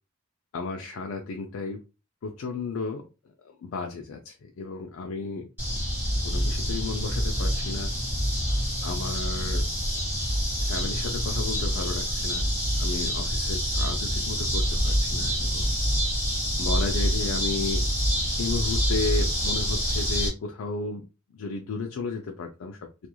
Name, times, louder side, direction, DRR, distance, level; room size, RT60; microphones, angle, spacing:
voice 1, 0.5-1.8 2.2-3.1 3.4-5.5 6.2-7.9 8.8-9.6 10.6-12.5 12.8-15.8 16.6-17.9 18.4-21.1 21.3-22.8, left 4 dB, 80° left, 3 dB, 0.4 m, -33 dB
sound 1, 5.6-20.3, equal, 10° right, 1.3 m, -26 dB
2.4 x 2.3 x 2.9 m, 0.29 s
head